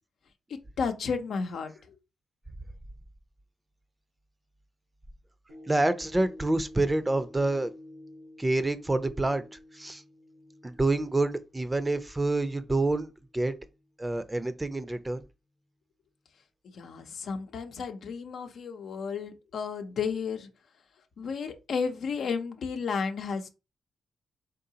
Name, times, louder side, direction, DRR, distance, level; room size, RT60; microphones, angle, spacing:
voice 1, 0.5-2.0 16.6-20.5 21.2-23.5, left 5 dB, 75° left, 0.7 m, -33 dB
sound 1, 5.5-13.9 14.4-14.5, left 1 dB, 80° right, 1.1 m, -51 dB
voice 2, 5.7-7.7 8.4-9.4 9.7-10.0 10.6-13.6 14.0-15.2, right 2 dB, 20° right, 0.6 m, -27 dB
3.8 x 3.7 x 2.8 m
cardioid pair, 55°, 0 cm